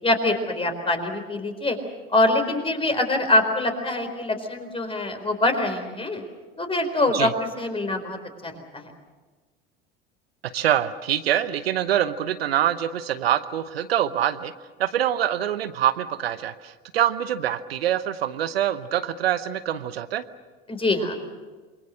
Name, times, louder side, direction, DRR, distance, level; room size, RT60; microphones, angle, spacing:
voice 1, 0.0-1.8 2.1-6.2 6.6-7.3 7.6-8.2 8.4-8.9 20.7-21.2, left 2 dB, 20° left, 6 dB, 4.4 m, -24 dB
voice 2, 10.5-14.5 14.8-20.2, right 11 dB, 80° right, 13 dB, 0.9 m, -25 dB
28.0 x 22.5 x 6.6 m, 1.3 s
figure-of-eight pair, 70°, 30 cm